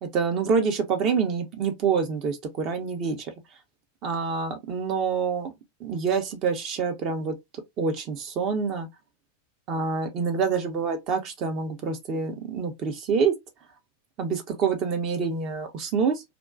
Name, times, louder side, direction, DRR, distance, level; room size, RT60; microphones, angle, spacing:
voice 1, 0.0-3.3 4.0-5.5 5.8-8.9 9.7-13.3 14.2-16.2, right 5 dB, 35° right, 0.6 m, -27 dB
2.4 x 2.2 x 2.4 m
figure-of-eight pair, 90°, 0 cm